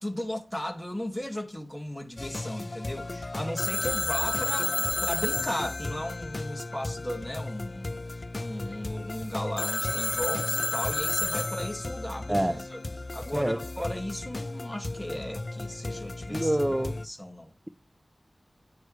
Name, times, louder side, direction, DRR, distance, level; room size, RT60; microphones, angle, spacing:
voice 1, 0.0-12.8 13.1-17.5, left 1 dB, 5° left, 2.1 m, -36 dB
sound 1, 2.2-17.1, left 2 dB, 45° left, 0.5 m, -36 dB
Telephone, 3.6-7.2 9.6-12.1, left 3 dB, 65° left, 1.2 m, -31 dB
voice 2, 16.3-17.0, right 1 dB, 15° right, 0.6 m, -26 dB
9.7 x 9.4 x 3.3 m
wide cardioid pair, 80°, 0 cm